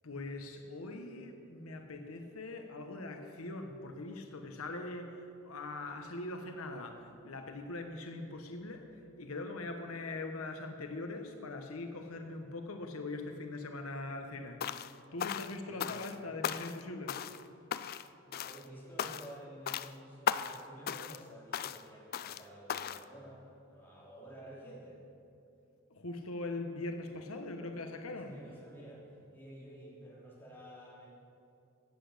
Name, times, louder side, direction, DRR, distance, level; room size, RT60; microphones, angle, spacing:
voice 1, 0.0-8.9 9.2-14.6 15.1-17.2 25.9-28.3, left 2 dB, 90° left, 5 dB, 1.1 m, -42 dB
sound 1, 14.6-14.9 15.2-16.2 16.4-16.8 17.1-17.4 17.7-18.1 18.3-18.6 19.0-19.4 19.7-19.9 20.3-20.6 20.9-21.2 21.5-21.8 22.1-22.4 22.7-23.0, left 8 dB, 45° left, 0.3 m, -36 dB
voice 2, 15.6-16.4 17.3-17.4 18.2-25.0 28.1-31.1, right 1 dB, 10° left, -6 dB, 3.3 m, -51 dB
16.0 x 8.3 x 6.7 m, 2.6 s
head